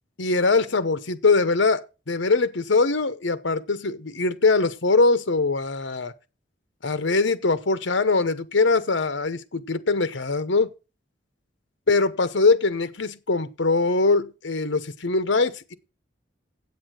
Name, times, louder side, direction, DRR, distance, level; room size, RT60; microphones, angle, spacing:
voice 1, 0.2-6.1 6.8-10.7 11.9-15.7, left 3 dB, 75° left, 0.9 m, -22 dB
8.5 x 8.3 x 6.4 m
head